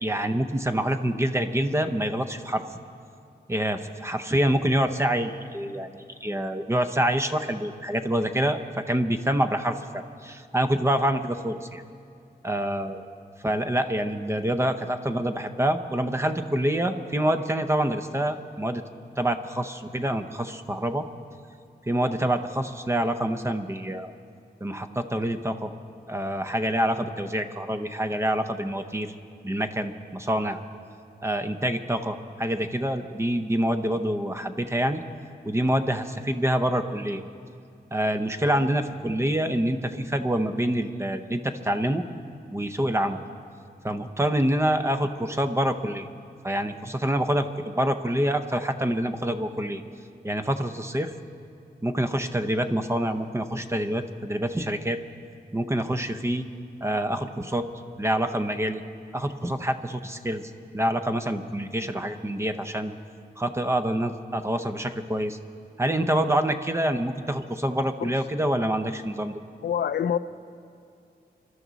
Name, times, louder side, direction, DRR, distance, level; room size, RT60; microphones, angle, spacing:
voice 1, 0.0-2.6 3.5-11.8 12.4-13.0 13.4-18.8 19.2-21.1 21.9-24.1 24.6-25.7 26.1-29.1 29.4-30.6 31.2-35.0 35.4-37.2 37.9-42.0 42.5-43.2 43.8-46.1 46.4-49.8 50.2-51.1 51.8-55.0 55.5-56.4 56.8-57.7 58.0-58.8 59.1-60.4 60.7-62.9 63.4-65.4 65.8-69.3, right 1 dB, 15° right, 8 dB, 0.6 m, -26 dB
voice 2, 69.6-70.2, left 8 dB, 80° left, 13 dB, 0.5 m, -25 dB
25.5 x 12.5 x 4.0 m, 2.4 s
wide cardioid pair, 160°, 17 cm